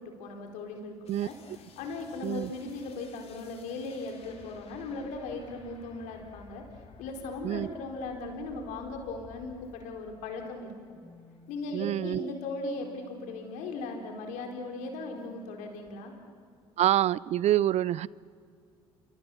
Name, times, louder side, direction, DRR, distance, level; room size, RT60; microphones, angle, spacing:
voice 1, 0.0-0.9 1.2-1.3 1.8-6.6 7.0-10.7 11.5-16.1, left 3 dB, 75° left, 3 dB, 4.2 m, -38 dB
sound 1, 1.0-10.6 10.9-15.9, left 3 dB, 55° left, 3.6 m, -54 dB
voice 2, 7.4-7.7 11.7-12.3 16.8-18.1, right 12 dB, 60° right, 22 dB, 0.5 m, -26 dB
27.5 x 25.0 x 7.2 m, 2.2 s
hypercardioid pair, 60°, 13 cm